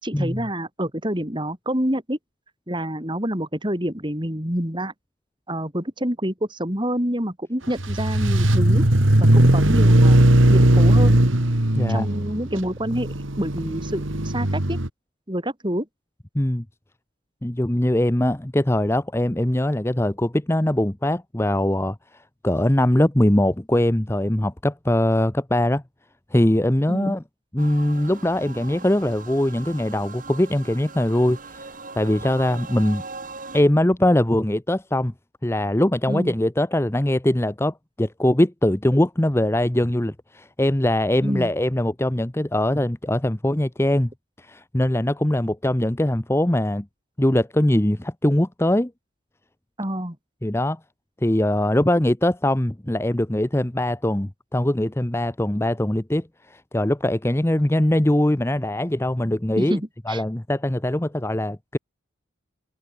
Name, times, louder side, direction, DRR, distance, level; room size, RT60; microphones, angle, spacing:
voice 1, 0.0-2.2 2.7-4.9 5.5-8.8 9.2-10.2 10.5-11.2 11.9-14.8 15.3-15.9 26.9-27.1 36.1-36.4 41.2-41.5 49.8-50.2 59.6-59.8 60.1-60.2, equal, 20° right, 4.6 m, -27 dB
sound 1, 7.8-14.9, right 1 dB, 65° right, 2.2 m, -18 dB
voice 2, 17.4-25.8 26.3-27.2 27.5-31.7 32.0-33.0 33.5-35.1 35.4-44.1 44.4-46.9 47.2-48.9 50.4-50.8 51.2-59.8 60.1-61.8, left 1 dB, 10° left, 0.7 m, -22 dB
sound 2, 27.6-33.6, right 3 dB, 40° right, 4.3 m, -40 dB
head